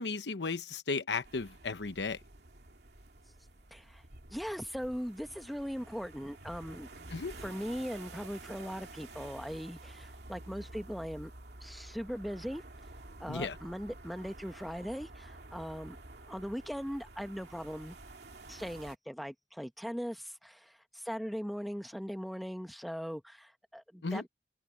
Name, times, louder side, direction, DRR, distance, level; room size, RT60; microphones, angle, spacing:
voice 1, 0.0-2.2 7.1-7.3 13.3-13.6 24.0-24.2, left 4 dB, 80° left, 1.0 m, -35 dB
sound 1, 1.2-19.0, right 2 dB, 70° right, 2.4 m, -50 dB
voice 2, 3.7-4.0 4.3-11.3 11.6-12.6 13.2-16.0 16.3-18.0 18.5-24.3, equal, ahead, 1.0 m, -40 dB
open air
head